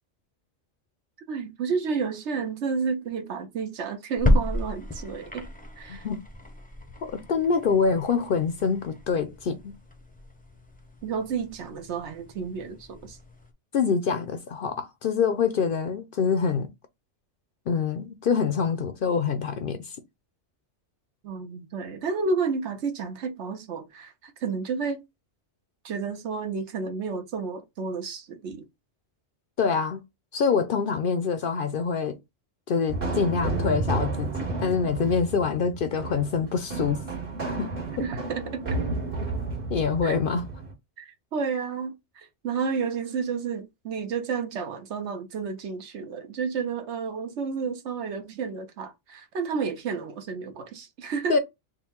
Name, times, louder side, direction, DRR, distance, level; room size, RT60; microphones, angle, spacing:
voice 1, 1.3-5.5 5.8-6.1 11.0-13.2 21.2-25.0 25.8-28.6 38.0-38.8 40.0-40.1 41.0-51.4, right 5 dB, 75° right, 1.1 m, -31 dB
Keurig Making Coffee, 4.2-13.5, left 1 dB, 10° left, 0.5 m, -32 dB
voice 2, 5.9-6.2 7.0-9.7 13.7-16.7 17.7-20.0 29.6-30.0 30.3-32.2 32.7-37.0 37.4-37.7 39.2-39.3 39.7-40.4 51.3-51.4, left 5 dB, 60° left, 0.6 m, -25 dB
sound 1, 32.9-40.7, right 3 dB, 50° right, 1.7 m, -32 dB
3.7 x 2.2 x 4.3 m
omnidirectional pair, 1.2 m